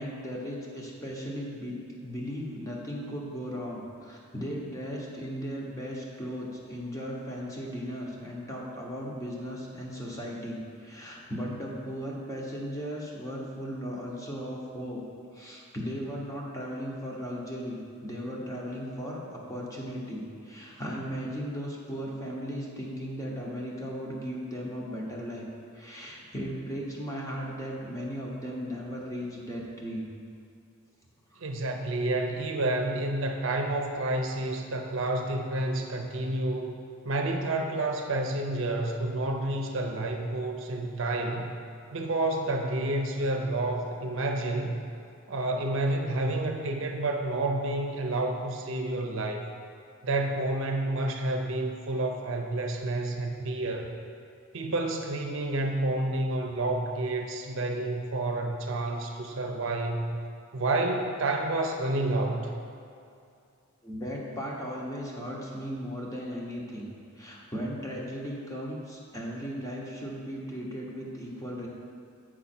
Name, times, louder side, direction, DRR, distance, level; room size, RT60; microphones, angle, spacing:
voice 1, 0.0-15.0 15.3-25.5 25.7-30.1 31.3-31.5 63.8-66.9 67.2-71.7, equal, 15° left, -3 dB, 0.9 m, -36 dB
voice 2, 31.4-36.7 37.0-41.5 41.9-44.7 45.3-49.5 50.0-53.9 54.5-60.1 60.5-62.6, right 2 dB, 60° right, 3 dB, 0.6 m, -29 dB
7.5 x 5.6 x 4.3 m, 2.5 s
head